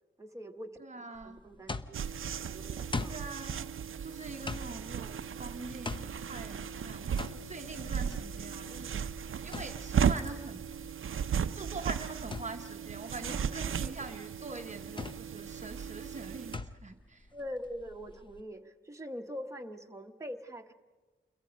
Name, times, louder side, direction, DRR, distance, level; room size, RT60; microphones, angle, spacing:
voice 1, 0.2-2.1 2.4-3.2 13.6-14.0 17.3-20.7, equal, 15° right, 3 dB, 1.1 m, -44 dB
voice 2, 0.8-1.4 3.1-3.7 4.0-10.6 11.5-17.3, right 3 dB, 35° right, 4 dB, 0.9 m, -44 dB
sound 1, 1.1-18.4, left 3 dB, 25° left, 0.7 m, -44 dB
sound 2, 1.9-16.6, right 7 dB, 80° right, 0.6 m, -36 dB
28.5 x 22.5 x 5.2 m, 1.3 s
wide cardioid pair, 140°, 21 cm